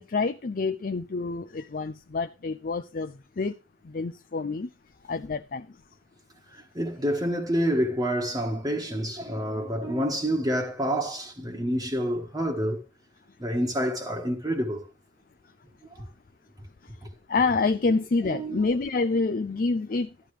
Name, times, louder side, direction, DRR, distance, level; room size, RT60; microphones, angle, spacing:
voice 1, 0.0-3.5 3.8-4.7 5.0-5.8 16.8-16.9 17.3-20.3, left 3 dB, 45° left, 0.5 m, -27 dB
voice 2, 6.5-12.8 13.4-14.8 15.9-16.0 18.3-18.7, equal, 20° right, 1.4 m, -28 dB
12.0 x 11.0 x 3.3 m
head